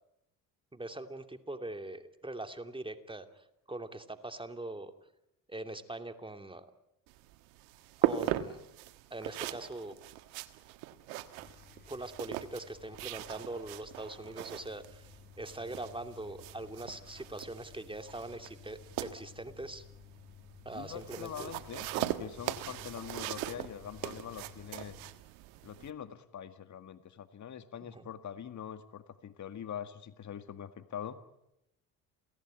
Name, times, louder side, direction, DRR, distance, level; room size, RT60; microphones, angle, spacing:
voice 1, 0.7-4.9 5.5-6.7 8.0-8.6 9.1-9.9 11.9-15.1 15.4-19.8 20.6-21.5 27.8-28.1, right 2 dB, 10° right, 7 dB, 2.8 m, -42 dB
sound 1, 7.1-25.9, right 14 dB, 80° right, 1.6 m, -39 dB
sound 2, 11.4-25.1, left 8 dB, 25° left, 5.1 m, -55 dB
voice 2, 20.7-25.0 25.6-31.2, left 9 dB, 45° left, 10 dB, 1.9 m, -44 dB
28.0 x 18.0 x 9.1 m, 0.85 s
hypercardioid pair, 65°, 41 cm